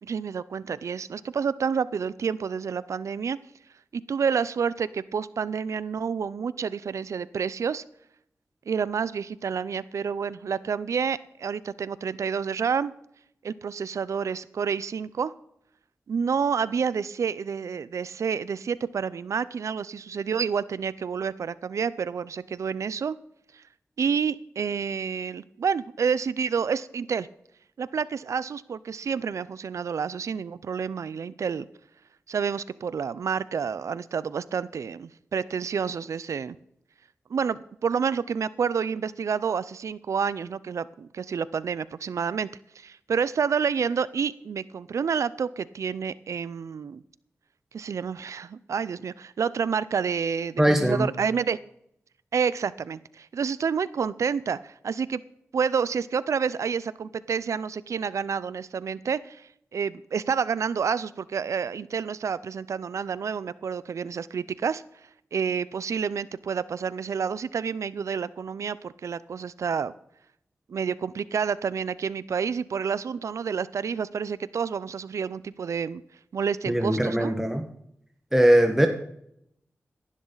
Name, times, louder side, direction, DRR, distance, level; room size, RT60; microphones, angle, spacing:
voice 1, 0.0-3.4 3.9-7.8 8.7-12.9 13.4-15.3 16.1-23.2 24.0-27.3 27.8-31.7 32.3-36.6 37.3-42.5 42.8-47.0 47.7-51.6 52.3-55.2 55.5-64.8 65.3-69.9 70.7-76.0 76.3-77.3, right 6 dB, 85° right, 18 dB, 0.5 m, -29 dB
voice 2, 50.6-51.1 76.7-77.7 78.3-78.9, right 1 dB, 10° right, 4 dB, 1.4 m, -20 dB
17.0 x 11.5 x 4.0 m, 0.75 s
cardioid pair, 55°, 5 cm